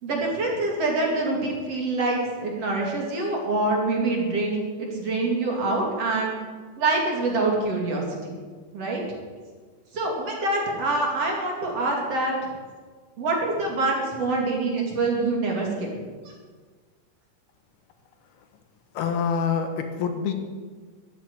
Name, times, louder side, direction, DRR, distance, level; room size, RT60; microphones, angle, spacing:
voice 1, 0.0-6.4 6.8-8.4 8.7-9.0 9.9-12.3 13.2-15.9, right 2 dB, 45° right, -1 dB, 3.5 m, -25 dB
voice 2, 18.9-20.3, left 6 dB, 80° left, 6 dB, 3.3 m, -26 dB
13.5 x 9.5 x 9.9 m, 1.5 s
omnidirectional pair, 4.4 m